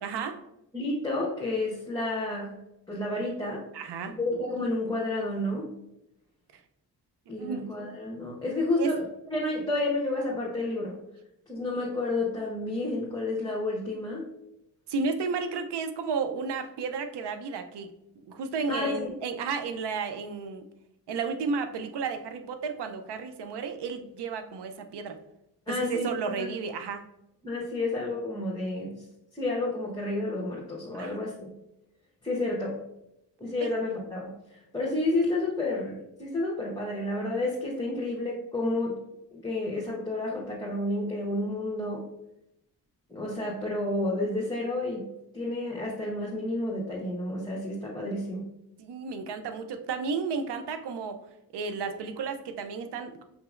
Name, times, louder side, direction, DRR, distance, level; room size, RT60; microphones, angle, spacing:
voice 1, 0.0-0.4 3.7-4.2 7.3-7.7 8.8-8.9 14.9-17.9 18.3-20.7 21.1-25.2 25.7-27.1 30.9-31.3 33.6-33.7 48.8-51.2 51.5-53.2, right 5 dB, 70° right, 8 dB, 0.7 m, -33 dB
voice 2, 0.7-2.6 2.9-3.6 4.2-5.7 7.3-9.0 9.3-11.0 11.5-14.3 18.7-19.1 25.7-26.1 26.4-26.5 27.4-29.0 29.3-31.5 32.2-32.8 33.4-39.0 39.3-42.0 43.1-45.1 45.3-48.5, left 2 dB, 10° left, -5 dB, 1.2 m, -30 dB
6.0 x 2.8 x 2.5 m, 0.84 s
cardioid pair, 55°, 43 cm